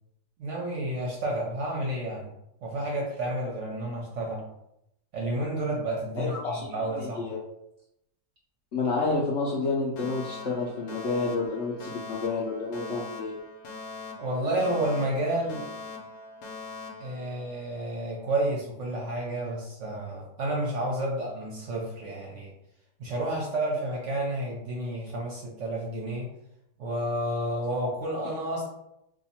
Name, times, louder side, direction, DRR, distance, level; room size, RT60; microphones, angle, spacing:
voice 1, 0.4-2.3 2.6-4.5 5.1-7.3 14.2-15.7 17.0-22.5 23.0-26.3 26.8-28.7, right 1 dB, 60° right, -2 dB, 0.8 m, -30 dB
voice 2, 6.2-7.4 8.7-13.3, left 3 dB, 65° left, -5 dB, 0.7 m, -29 dB
Alarm, 10.0-18.0, left 3 dB, 85° left, 1.2 m, -42 dB
2.8 x 2.5 x 4.1 m, 0.82 s
omnidirectional pair, 1.8 m